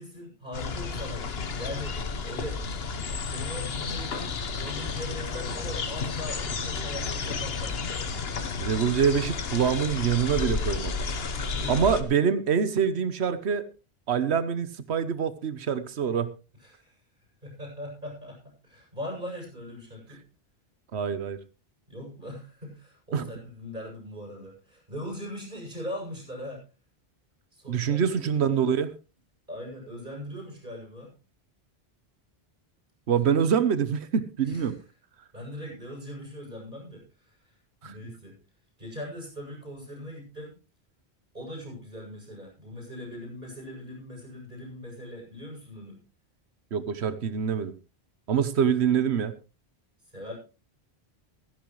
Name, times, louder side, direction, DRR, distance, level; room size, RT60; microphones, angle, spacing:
voice 1, 0.0-2.6 3.3-8.0 11.5-12.0 16.6-16.9 17.4-20.2 21.9-26.6 27.5-28.7 29.5-31.1 34.4-34.7 35.3-37.6 37.8-38.4 38.8-40.6 41.3-46.0 50.1-50.4, equal, 50° right, 0 dB, 8.0 m, -40 dB
sound 1, 0.5-12.0, left 5 dB, 70° left, 1.3 m, -32 dB
voice 2, 8.6-10.9 11.7-13.7 14.1-16.3 20.9-21.4 23.1-23.3 27.7-28.9 33.1-34.8 37.8-37.9 46.7-47.7 48.3-49.3, right 7 dB, 80° right, 14 dB, 1.2 m, -25 dB
16.0 x 14.5 x 3.2 m, 0.31 s
omnidirectional pair, 1.1 m